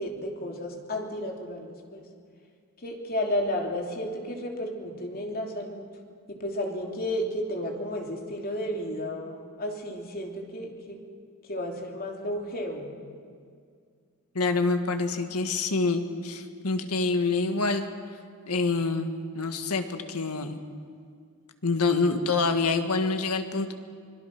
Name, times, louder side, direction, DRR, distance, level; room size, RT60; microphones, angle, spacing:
voice 1, 0.0-2.1 2.8-5.9 6.3-11.0 11.5-12.9, left 1 dB, 40° left, 1 dB, 3.1 m, -32 dB
voice 2, 14.3-17.8 18.5-20.6 21.6-23.7, left 3 dB, 85° left, 7 dB, 1.7 m, -26 dB
25.5 x 22.0 x 6.1 m, 2.2 s
head